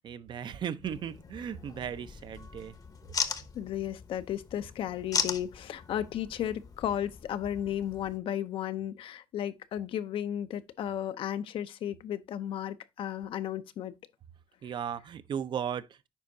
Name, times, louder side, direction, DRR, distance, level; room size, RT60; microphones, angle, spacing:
voice 1, 0.0-2.8 14.6-16.1, right 8 dB, 60° right, 0.5 m, -36 dB
sound 1, 0.8-8.2, left 5 dB, 40° left, 0.8 m, -38 dB
voice 2, 3.3-14.0, left 10 dB, 75° left, 0.6 m, -34 dB
10.0 x 4.3 x 2.6 m
cardioid pair, 95°, 9 cm